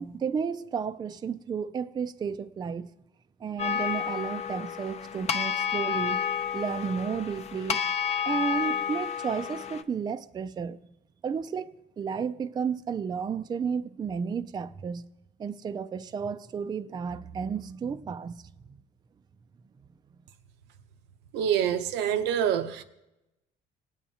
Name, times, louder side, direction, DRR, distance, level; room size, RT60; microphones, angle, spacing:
voice 1, 0.0-2.9 3.4-6.2 6.5-7.8 8.3-10.8 11.2-15.0 15.4-18.3, right 6 dB, 25° right, 0.4 m, -32 dB
sound 1, 3.6-9.8, left 8 dB, 40° left, 0.6 m, -30 dB
voice 2, 21.3-22.8, right 9 dB, 90° right, 0.7 m, -26 dB
19.0 x 8.6 x 2.8 m
cardioid pair, 110°, 17 cm